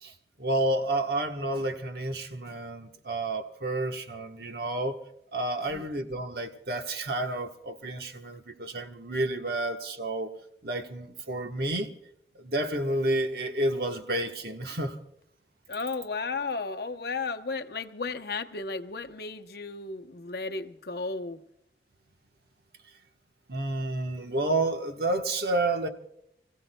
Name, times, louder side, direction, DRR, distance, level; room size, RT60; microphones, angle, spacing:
voice 1, 0.0-5.0 5.3-10.3 10.6-11.9 12.3-15.0 23.5-25.9, right 1 dB, 60° right, 1.2 m, -30 dB
voice 2, 15.7-21.4, left 4 dB, 60° left, 0.8 m, -34 dB
29.5 x 15.5 x 2.2 m
head